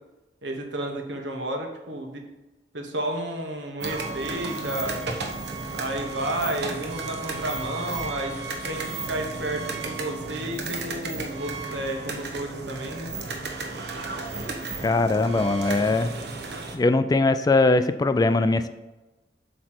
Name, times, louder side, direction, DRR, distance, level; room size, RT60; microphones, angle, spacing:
voice 1, 0.4-2.2 2.7-5.0 5.7-8.4 8.7-13.1, right 1 dB, 90° right, 3 dB, 1.3 m, -31 dB
sound 1, 3.8-16.8, right 3 dB, 65° right, 1.0 m, -33 dB
voice 2, 14.8-16.1 16.7-18.7, left 3 dB, 20° left, 11 dB, 0.3 m, -21 dB
8.0 x 3.2 x 5.9 m, 1.1 s
head